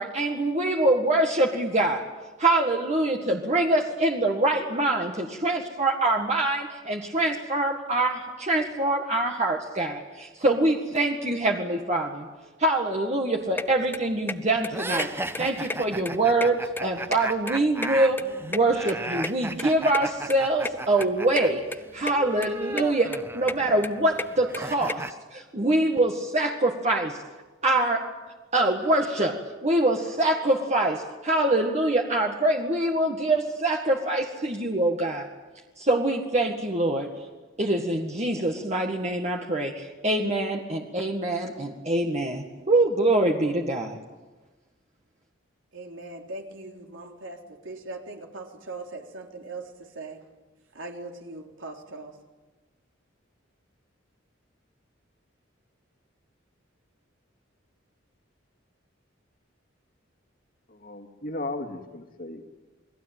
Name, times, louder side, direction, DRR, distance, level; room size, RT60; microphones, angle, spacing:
voice 1, 0.0-2.0 2.4-12.3 12.6-21.6 21.9-25.1 25.3-27.2 27.6-28.1 28.5-35.3 35.8-37.1 37.6-44.0, right 2 dB, 35° right, 1 dB, 1.8 m, -24 dB
sound 1, 13.6-13.7 13.9-14.4 14.6-14.7 15.0-15.1 15.3-16.1 16.4-17.6 17.8-19.3 19.6-19.7 19.9-20.0 20.3-20.4 20.6-20.8 21.0-21.4 21.7-22.1 22.4-22.9 23.1-24.9, left 2 dB, 10° left, 0.8 m, -32 dB
sound 2, 14.7-21.5 21.8-25.1, right 2 dB, 10° right, 1.0 m, -35 dB
voice 2, 45.7-50.2 50.7-52.2, right 2 dB, 75° right, 2 dB, 3.6 m, -40 dB
voice 3, 60.7-62.5, left 2 dB, 45° left, 5 dB, 2.5 m, -36 dB
28.5 x 20.5 x 9.2 m, 1.2 s
head